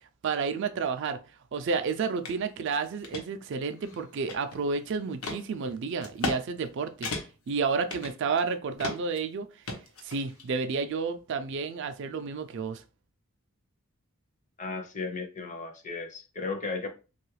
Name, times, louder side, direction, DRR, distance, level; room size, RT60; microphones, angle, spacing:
voice 1, 0.2-1.2 1.5-7.1 7.5-9.5 10.0-12.8, right 5 dB, 55° right, 0.3 m, -31 dB
sound 1, 2.2-2.4 2.8-3.2 3.8-4.7 5.2-5.4 6.0-6.4 6.7-6.8 7.0-7.5 7.9-8.5 8.8-9.2 9.7-10.5, left 3 dB, 85° left, 0.8 m, -35 dB
voice 2, 14.6-16.9, left 4 dB, 35° left, 0.6 m, -35 dB
3.0 x 2.3 x 3.1 m
head